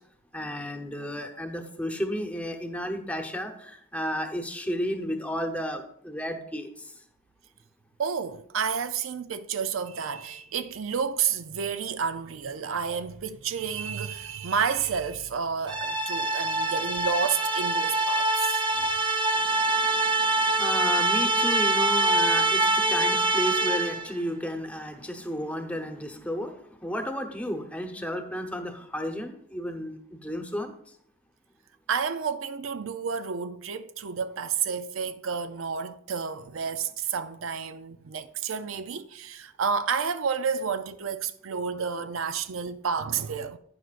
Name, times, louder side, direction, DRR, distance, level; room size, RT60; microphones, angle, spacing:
voice 1, 0.3-6.9 19.3-30.7, equal, 5° left, 0.9 m, -33 dB
voice 2, 8.0-18.9 31.9-43.6, right 6 dB, 90° right, 0.5 m, -30 dB
sound 1, 15.7-24.1, right 2 dB, 25° right, 0.6 m, -24 dB
11.0 x 9.3 x 2.5 m
head